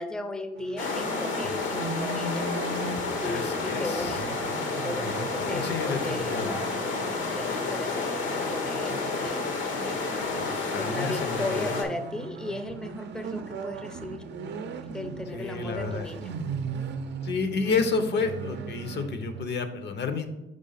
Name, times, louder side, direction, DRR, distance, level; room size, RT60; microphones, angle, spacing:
voice 1, 0.0-2.5 3.2-4.5 4.8-9.5 9.8-10.0 10.7-14.2 14.9-16.3, left 1 dB, 5° left, 8 dB, 0.5 m, -36 dB
sound 1, 0.6-19.5, right 4 dB, 60° right, 0.5 m, -38 dB
sound 2, 0.8-11.8, left 4 dB, 75° left, 1.0 m, -30 dB
voice 2, 3.2-4.2 5.5-6.6 10.3-11.7 15.3-16.1 17.2-20.3, left 4 dB, 60° left, 8 dB, 0.7 m, -30 dB
5.3 x 3.3 x 5.5 m, 0.98 s
cardioid pair, 90°, 20 cm